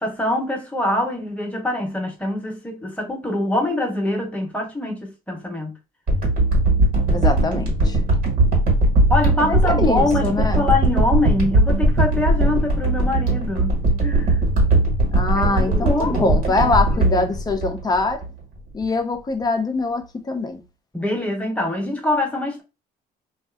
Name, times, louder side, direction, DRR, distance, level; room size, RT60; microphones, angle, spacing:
voice 1, 0.0-5.7 9.1-14.4 15.3-17.3 20.9-22.6, left 1 dB, 10° left, 0.9 m, -24 dB
sound 1, 6.1-18.3 18.8-18.9, right 2 dB, 55° right, 1.4 m, -19 dB
voice 2, 7.1-8.0 9.5-10.6 15.1-18.2 18.7-20.6, left 3 dB, 25° left, 0.6 m, -23 dB
2.5 x 2.4 x 2.3 m
cardioid pair, 110°, 17 cm